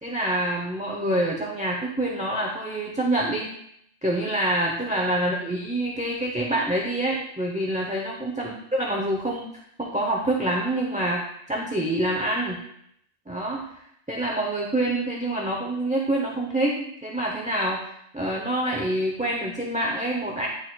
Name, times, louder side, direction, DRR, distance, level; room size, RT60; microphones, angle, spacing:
voice 1, 0.0-3.5 4.0-9.5 9.8-12.6 13.3-13.7 14.1-20.5, right 1 dB, 10° right, -2 dB, 0.6 m, -26 dB
10.5 x 4.2 x 2.3 m, 0.73 s
omnidirectional pair, 1.1 m